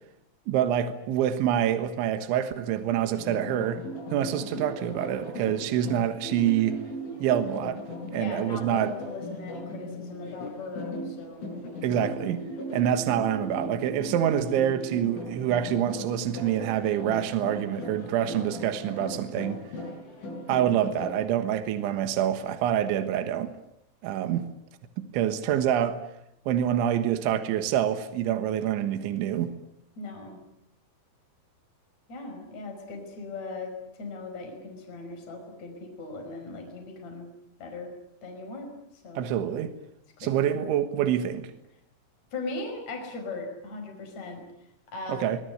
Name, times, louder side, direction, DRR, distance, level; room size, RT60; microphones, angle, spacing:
voice 1, 0.5-3.8 4.1-6.8 7.2-7.8 8.1-9.0 11.8-12.4 12.7-19.6 20.5-23.5 24.0-24.5 25.1-26.0 26.5-29.5 39.2-39.7 40.2-41.5 45.1-45.4, right 10 dB, 80° right, 3.7 m, -26 dB
sound 1, 3.2-21.2, equal, 85° left, 10.0 m, -38 dB
voice 2, 8.2-11.4 30.0-30.4 32.1-37.3 37.6-37.9 38.2-39.3 40.2-40.6 42.3-44.4 44.9-45.3, left 3 dB, 35° left, 6.2 m, -38 dB
25.0 x 21.0 x 9.3 m
omnidirectional pair, 5.5 m